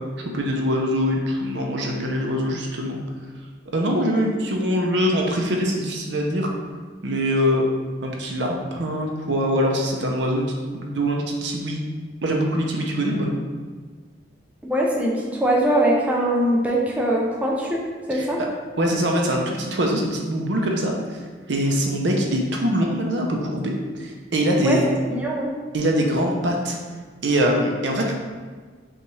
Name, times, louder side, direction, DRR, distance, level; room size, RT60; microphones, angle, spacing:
voice 1, 0.2-3.0 3.7-6.5 7.0-7.6 8.0-11.8 12.2-13.4 18.1-18.5 18.8-21.2 21.5-24.9 25.7-26.8 27.2-28.1, equal, 65° right, 0 dB, 0.6 m, -23 dB
voice 2, 14.6-17.8 18.1-18.4 24.6-25.5, right 1 dB, 10° right, -3 dB, 0.4 m, -22 dB
5.3 x 2.4 x 3.1 m, 1.5 s
head